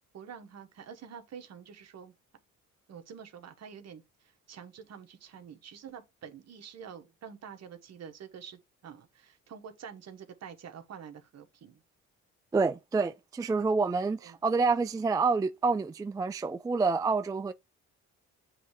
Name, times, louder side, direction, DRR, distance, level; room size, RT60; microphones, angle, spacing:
voice 1, 0.1-2.1 2.9-11.8 14.2-14.4, right 7 dB, 60° right, 1.2 m, -47 dB
voice 2, 12.5-17.5, right 4 dB, 10° right, 0.3 m, -28 dB
7.7 x 3.2 x 4.7 m
cardioid pair, 90°, 30 cm